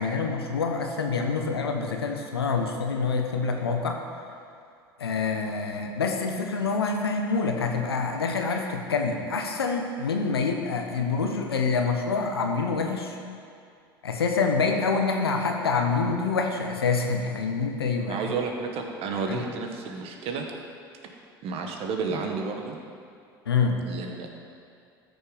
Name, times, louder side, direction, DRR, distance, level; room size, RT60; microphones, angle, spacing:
voice 1, 0.0-4.0 5.0-13.2 14.0-18.2 19.3-19.4 23.5-23.8, left 4 dB, 90° left, 3 dB, 1.0 m, -26 dB
voice 2, 18.0-20.4 21.4-22.8 23.9-24.4, right 4 dB, 50° right, 3 dB, 1.5 m, -31 dB
13.0 x 6.4 x 5.1 m, 2.4 s
hypercardioid pair, 75°, 13 cm